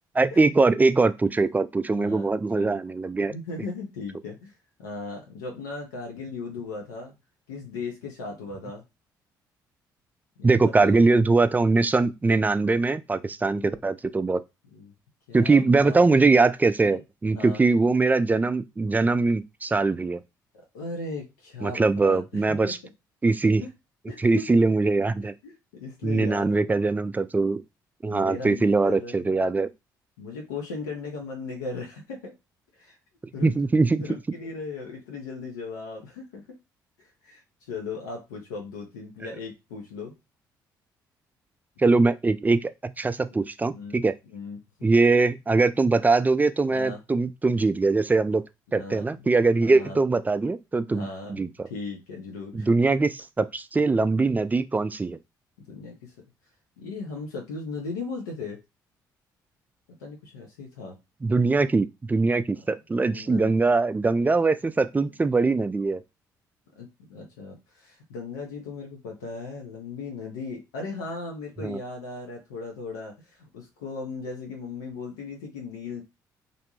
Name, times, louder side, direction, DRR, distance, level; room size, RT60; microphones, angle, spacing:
voice 1, 0.1-3.3 10.4-14.4 15.3-20.2 21.6-22.8 23.2-23.6 24.2-25.3 26.0-27.6 28.0-29.7 33.4-34.0 41.8-44.1 44.8-48.4 48.7-51.7 52.5-53.1 53.4-55.2 61.2-66.0 71.6-71.8, right 3 dB, 15° right, 0.3 m, -22 dB
voice 2, 1.9-2.2 2.5-2.8 3.3-4.5 4.8-7.1 7.5-8.8 10.4-11.0 13.4-13.8 14.7-14.9 15.3-16.3 16.9-17.0 17.3-17.6 20.7-22.8 23.6-23.7 24.1-24.5 25.4-26.7 28.1-29.5 30.2-32.3 32.8-33.0 33.3-33.6 34.0-36.4 37.0-40.1 43.6-44.0 44.3-44.6 46.6-47.0 48.7-49.3 49.6-50.0 50.9-52.7 55.7-56.1 56.8-58.6 60.0-61.0 63.0-63.6 66.8-76.0, left 4 dB, 80° left, 0.6 m, -37 dB
2.6 x 2.1 x 2.9 m
hypercardioid pair, 50°, 10 cm